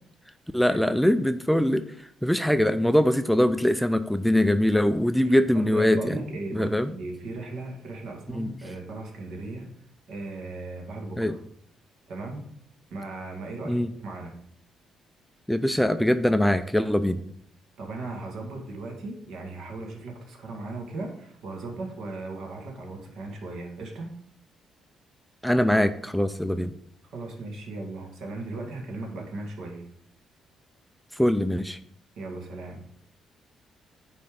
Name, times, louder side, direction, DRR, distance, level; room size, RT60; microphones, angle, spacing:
voice 1, 0.5-1.8 2.2-6.2 6.5-6.9 8.3-8.5 11.2-11.3 13.6-13.9 15.5-17.2 25.4-26.7 31.1-31.8, left 1 dB, ahead, 10 dB, 0.3 m, -22 dB
voice 2, 5.2-9.7 10.1-11.3 12.1-12.4 12.9-14.4 17.8-24.1 27.1-29.8 32.2-32.8, right 2 dB, 70° right, 1 dB, 2.0 m, -37 dB
9.3 x 3.4 x 5.2 m, 0.68 s
cardioid pair, 125°, 0 cm